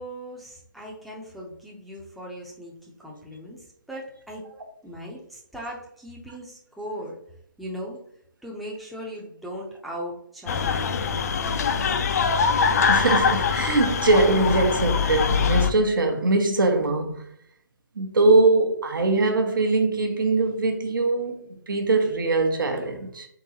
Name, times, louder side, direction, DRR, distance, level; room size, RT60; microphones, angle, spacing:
voice 1, 0.0-4.5 4.8-7.2 7.6-8.0 8.4-11.8, equal, ahead, 0.5 m, -38 dB
sound 1, 10.5-15.7, left 6 dB, 50° left, 0.4 m, -23 dB
voice 2, 12.9-17.2 18.0-23.3, right 2 dB, 75° right, 0.9 m, -22 dB
3.9 x 3.6 x 2.8 m
hypercardioid pair, 150°, 11 cm